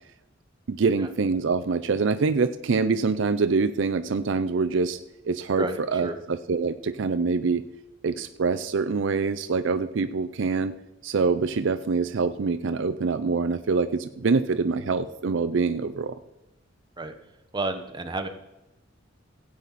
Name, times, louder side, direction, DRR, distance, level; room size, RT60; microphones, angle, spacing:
voice 1, 0.7-5.0 5.2-5.7 5.9-7.7 8.0-10.8 11.0-16.2, right 4 dB, 65° right, 10 dB, 0.5 m, -25 dB
voice 2, 5.6-6.2 17.0-17.1 17.5-18.3, right 2 dB, 25° right, 6 dB, 1.0 m, -31 dB
16.0 x 8.8 x 4.1 m, 0.93 s
head